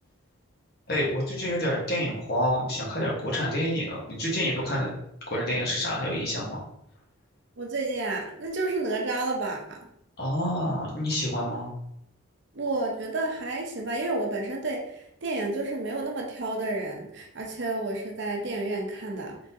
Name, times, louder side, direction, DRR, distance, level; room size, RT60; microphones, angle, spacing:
voice 1, 0.9-4.9 5.3-6.6 10.2-11.7, equal, 50° left, -4 dB, 1.2 m, -28 dB
voice 2, 7.6-9.8 12.5-19.4, right 2 dB, 55° right, 1 dB, 0.7 m, -30 dB
3.8 x 3.8 x 2.6 m, 0.74 s
head